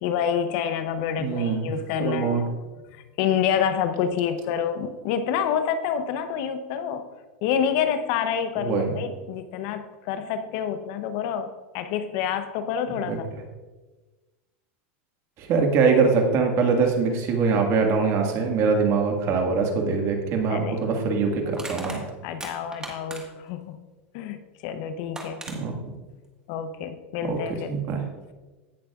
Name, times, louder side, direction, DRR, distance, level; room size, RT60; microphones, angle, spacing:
voice 1, 0.0-2.5 3.2-7.0 7.4-13.3 20.5-21.0 21.6-23.8 24.1-25.4 26.5-27.7, left 8 dB, 60° left, 10 dB, 0.8 m, -28 dB
voice 2, 1.2-1.7 2.0-2.4 8.6-8.9 12.9-13.2 15.4-22.0 25.5-25.8 27.3-27.4 27.7-28.0, right 5 dB, 45° right, 2 dB, 1.8 m, -23 dB
Crushing, 21.5-23.5 24.7-24.8 25.1-25.6, right 2 dB, 10° right, 1.6 m, -37 dB
17.0 x 6.3 x 2.4 m, 1.2 s
supercardioid pair, 125°, 7 cm